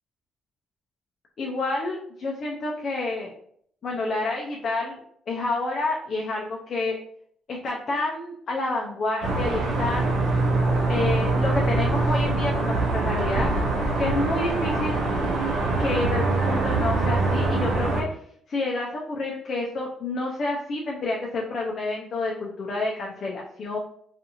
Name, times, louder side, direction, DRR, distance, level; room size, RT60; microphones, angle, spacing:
voice 1, 1.4-3.3 3.8-5.0 5.3-7.0 7.5-10.1 10.9-13.5 14.0-15.0 15.8-18.1 18.5-23.8, left 2 dB, 55° left, -2 dB, 0.5 m, -29 dB
sound 1, 9.2-18.0, right 3 dB, 75° right, 0.6 m, -24 dB
2.6 x 2.4 x 2.8 m, 0.66 s
cardioid pair, 90°, 0 cm